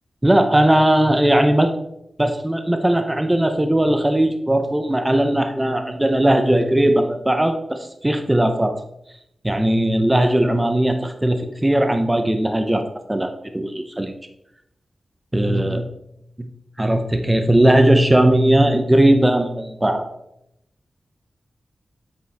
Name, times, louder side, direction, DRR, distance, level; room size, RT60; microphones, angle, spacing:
voice 1, 0.2-1.7 2.2-8.8 9.4-12.8 13.1-14.1 15.3-15.9 16.4-16.5 16.8-20.1, right 1 dB, 15° right, 7 dB, 0.7 m, -18 dB
7.9 x 7.4 x 3.4 m, 0.81 s
wide cardioid pair, 105°, 0 cm